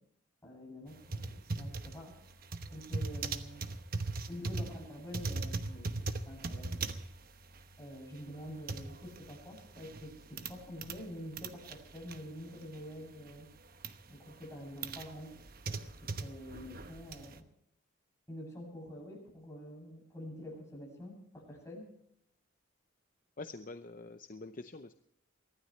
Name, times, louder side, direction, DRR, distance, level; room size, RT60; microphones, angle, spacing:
voice 1, 0.4-2.2 2.7-3.7 4.3-7.0 7.8-13.5 14.1-15.3 15.6-17.4 18.3-21.9, equal, 15° left, -2 dB, 7.9 m, -47 dB
sound 1, 0.9-11.1 11.3-13.0 13.3-14.0 14.4-17.4, right 3 dB, 45° right, 1.0 m, -40 dB
voice 2, 23.4-25.0, left 3 dB, 40° left, 8 dB, 0.7 m, -46 dB
24.0 x 16.0 x 3.3 m, 0.71 s
head